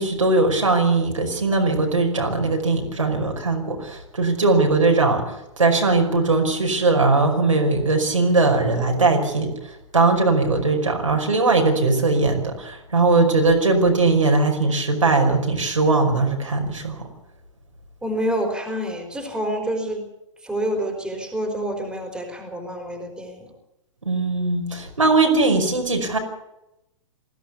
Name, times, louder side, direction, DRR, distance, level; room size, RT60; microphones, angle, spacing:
voice 1, 0.0-5.2 5.6-9.5 9.9-17.0 24.1-26.2, right 3 dB, 75° right, 2 dB, 5.4 m, -20 dB
voice 2, 18.0-20.1 20.4-23.5, right 1 dB, 5° right, 3 dB, 4.7 m, -27 dB
20.5 x 16.0 x 8.3 m, 0.88 s
figure-of-eight pair, 110°, 17 cm